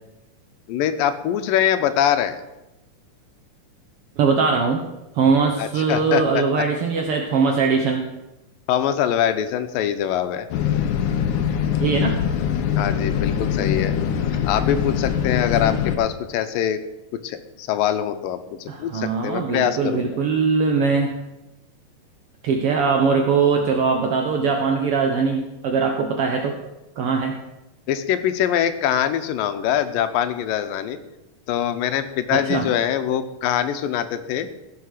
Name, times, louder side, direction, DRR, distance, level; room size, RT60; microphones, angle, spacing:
voice 1, 0.7-2.4 5.6-6.4 8.7-10.5 12.8-14.0 14.5-16.8 17.2-20.2 27.9-31.0 31.5-34.5, left 10 dB, 90° left, 10 dB, 2.5 m, -23 dB
voice 2, 4.2-4.9 5.1-8.1 11.8-12.2 15.6-15.7 18.7-21.1 22.4-26.6 27.0-27.4 32.3-32.7, right 5 dB, 75° right, 2 dB, 1.3 m, -21 dB
sound 1, 10.5-16.0, left 8 dB, 70° left, 2.2 m, -23 dB
15.5 x 5.9 x 6.4 m, 0.96 s
omnidirectional pair, 3.9 m